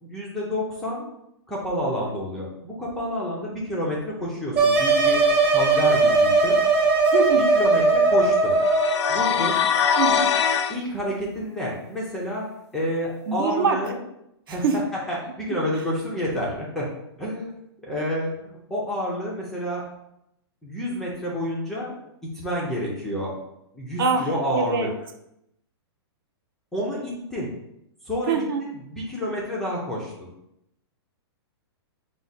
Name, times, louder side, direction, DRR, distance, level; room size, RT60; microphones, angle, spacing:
voice 1, 0.0-1.1 1.5-5.2 5.5-6.6 7.4-8.5 9.1-9.6 10.7-12.5 12.7-14.0 14.5-14.8 15.1-16.8 17.2-17.5 17.8-19.8 20.6-21.9 22.3-23.3 23.7-24.9 26.7-27.5 28.1-30.3, equal, 5° left, -5 dB, 0.3 m, -29 dB
sound 1, 4.5-9.0, right 3 dB, 30° right, 0.9 m, -19 dB
voice 2, 7.1-7.5 9.9-10.3 13.3-13.8 14.5-14.8 24.0-24.9 28.3-28.6, right 5 dB, 55° right, 5 dB, 0.6 m, -24 dB
sound 2, 8.6-10.8, left 7 dB, 85° left, 0.4 m, -22 dB
4.7 x 2.1 x 4.0 m, 0.81 s
hypercardioid pair, 170°, 14 cm